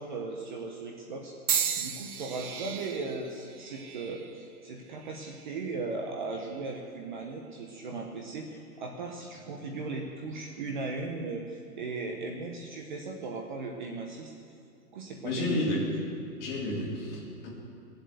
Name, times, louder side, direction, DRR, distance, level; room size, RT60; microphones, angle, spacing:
voice 1, 0.0-1.4 1.8-14.3 14.9-15.7, right 3 dB, 30° right, 2 dB, 1.0 m, -37 dB
sound 1, 1.5-5.6 6.3-6.7 7.7-7.9, right 7 dB, 60° right, 1.1 m, -35 dB
voice 2, 15.2-15.8 16.4-17.5, left 1 dB, 30° left, -5 dB, 3.6 m, -31 dB
19.0 x 7.9 x 8.2 m, 2.5 s
hypercardioid pair, 165°, 48 cm